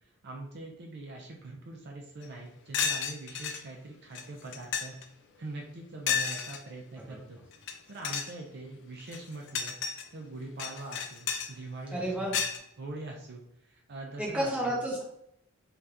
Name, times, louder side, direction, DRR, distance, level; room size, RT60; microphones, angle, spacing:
voice 1, 0.2-4.9 5.4-7.4 7.9-9.8 10.1-12.5 12.8-14.8, right 2 dB, 55° right, 1 dB, 0.5 m, -43 dB
sound 1, 2.2-2.3 2.7-3.6 4.1-4.2 4.5-5.0 6.1-6.6 7.5-7.7 8.0-8.3 9.0-10.0 10.6-11.5 12.3-12.6, left 7 dB, 60° left, 0.4 m, -31 dB
voice 2, 11.9-12.3 14.2-15.0, right 1 dB, 5° right, -4 dB, 0.8 m, -31 dB
2.7 x 2.3 x 3.4 m, 0.76 s
head